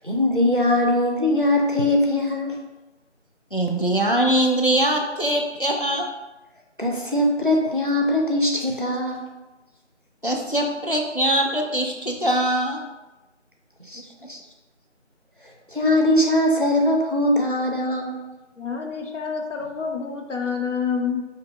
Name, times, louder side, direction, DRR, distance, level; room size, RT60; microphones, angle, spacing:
voice 1, 0.0-2.6 6.8-9.2 13.9-14.0 14.3-14.4 15.7-18.2, left 1 dB, 45° right, 1 dB, 0.4 m, -21 dB
voice 2, 3.5-6.1 10.2-12.8, right 1 dB, 50° left, 1 dB, 0.4 m, -22 dB
voice 3, 18.6-21.2, left 6 dB, 75° left, 1 dB, 0.7 m, -27 dB
4.9 x 2.8 x 2.2 m, 1.1 s
figure-of-eight pair, 180°, 37 cm